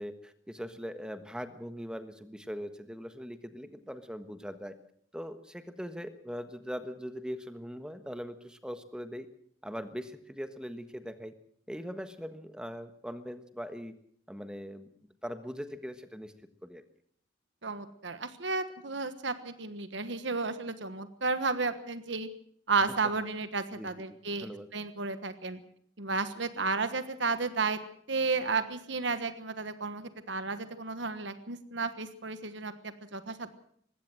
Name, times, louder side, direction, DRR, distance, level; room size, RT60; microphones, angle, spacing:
voice 1, 0.0-4.7 5.1-9.3 9.6-11.3 11.7-13.9 14.3-14.9 15.2-16.3 16.6-16.8 23.7-23.9 24.4-24.7, equal, 5° right, 10 dB, 1.4 m, -41 dB
voice 2, 17.6-22.3 22.7-25.6 26.0-27.8 28.1-33.6, right 4 dB, 65° right, 11 dB, 1.4 m, -33 dB
20.5 x 16.5 x 7.8 m, 0.63 s
head